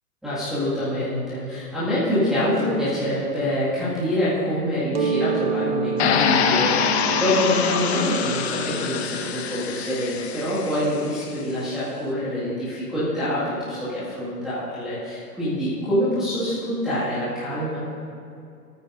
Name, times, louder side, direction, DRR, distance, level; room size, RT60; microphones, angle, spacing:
voice 1, 0.2-17.8, left 1 dB, ahead, -15 dB, 1.9 m, -25 dB
Mallet percussion, 4.9-10.5, right 6 dB, 45° right, 0.4 m, -30 dB
sound 1, 6.0-11.0, left 7 dB, 45° left, 0.7 m, -25 dB
18.5 x 9.2 x 2.6 m, 2.6 s
hypercardioid pair, 165°, 47 cm